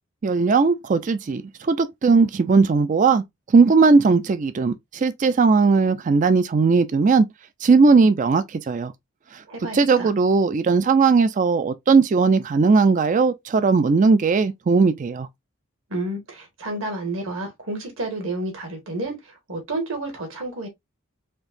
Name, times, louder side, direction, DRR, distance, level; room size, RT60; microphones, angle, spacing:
voice 1, 0.2-3.2 3.5-7.3 7.6-8.9 9.3-9.4 9.7-15.3, right 4 dB, 35° right, 0.3 m, -18 dB
voice 2, 9.5-10.1 15.9-20.7, right 2 dB, 60° right, 1.6 m, -30 dB
4.4 x 2.9 x 2.5 m
head